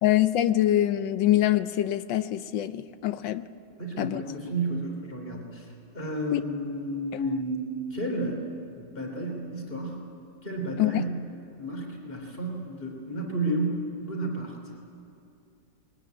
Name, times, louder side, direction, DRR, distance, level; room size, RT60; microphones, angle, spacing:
voice 1, 0.0-3.4 4.0-4.2 6.3-6.4 10.8-11.0, left 13 dB, 80° left, 12 dB, 1.5 m, -24 dB
voice 2, 3.8-8.5 8.8-10.0 10.4-11.2 11.6-14.7, right 1 dB, 30° left, 1 dB, 3.5 m, -32 dB
21.5 x 20.5 x 9.5 m, 2.6 s
omnidirectional pair, 2.0 m